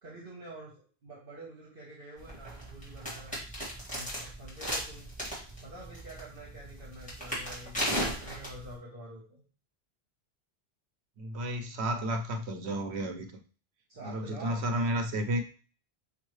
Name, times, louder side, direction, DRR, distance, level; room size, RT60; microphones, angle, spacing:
voice 1, 0.0-3.4 3.7-5.1 5.6-9.4 13.9-14.8, right 1 dB, 60° right, 1.3 m, -47 dB
sound 1, 2.2-8.8, equal, 5° left, 2.0 m, -36 dB
voice 2, 11.2-13.4 14.0-15.4, right 1 dB, 85° right, 1.0 m, -32 dB
5.4 x 2.6 x 3.1 m
omnidirectional pair, 1.1 m